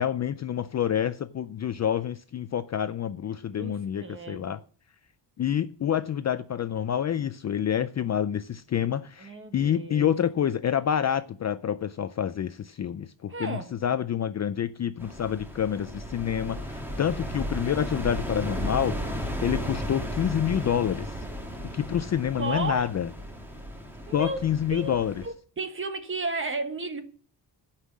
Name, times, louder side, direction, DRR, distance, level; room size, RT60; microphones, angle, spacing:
voice 1, 0.0-4.6 5.4-19.0 19.4-21.2 21.7-23.1 24.1-25.2, left 9 dB, 40° left, 0.4 m, -28 dB
voice 2, 4.0-4.6 9.2-10.1 13.3-13.7 22.4-22.9 24.1-24.4 24.7-27.0, right 3 dB, 30° right, 1.3 m, -33 dB
sound 1, 15.0-25.3, equal, 5° right, 1.6 m, -35 dB
9.6 x 5.7 x 8.3 m
wide cardioid pair, 170°, 43 cm